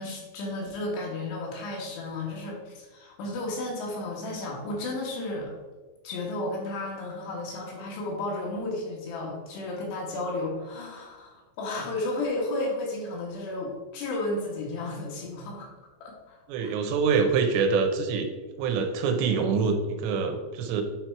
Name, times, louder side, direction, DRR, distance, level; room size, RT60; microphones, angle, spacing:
voice 1, 0.0-5.5 6.0-15.7 16.0-16.8, left 2 dB, 75° left, -2 dB, 3.6 m, -33 dB
voice 2, 16.5-18.3 18.6-20.8, right 5 dB, 80° right, 5 dB, 3.0 m, -25 dB
8.8 x 4.4 x 4.6 m, 1.3 s
omnidirectional pair, 5.2 m